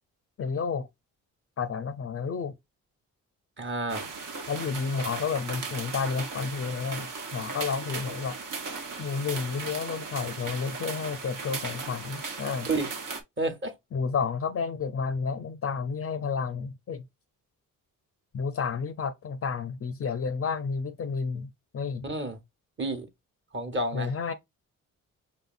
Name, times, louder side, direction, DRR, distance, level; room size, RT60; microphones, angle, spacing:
voice 1, 0.4-0.9 1.6-2.6 4.5-8.4 9.0-12.7 13.9-17.1 18.3-22.1 23.9-24.3, left 5 dB, 40° left, 0.5 m, -31 dB
voice 2, 3.6-4.1 12.7-12.9 13.4-13.7 22.0-22.4 22.8-23.1 23.5-24.1, right 2 dB, 35° right, 1.1 m, -30 dB
sound 1, 3.9-13.2, right 4 dB, 65° right, 0.9 m, -37 dB
5.4 x 2.6 x 2.5 m
cardioid pair, 70°, 35 cm